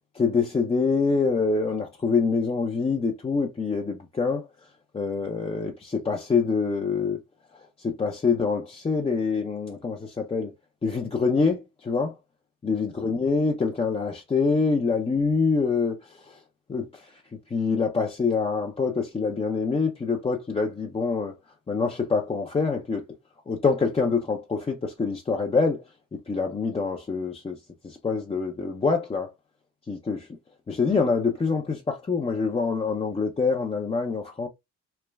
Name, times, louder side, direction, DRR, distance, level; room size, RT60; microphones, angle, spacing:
voice 1, 0.1-4.5 4.9-7.2 7.8-10.5 10.8-12.2 12.6-16.4 16.7-17.1 17.5-21.3 21.7-23.0 23.5-25.8 26.3-27.6 27.8-29.3 29.9-30.3 30.7-34.5, left 4 dB, 20° left, 0.5 m, -25 dB
3.2 x 2.1 x 2.3 m
cardioid pair, 85°, 31 cm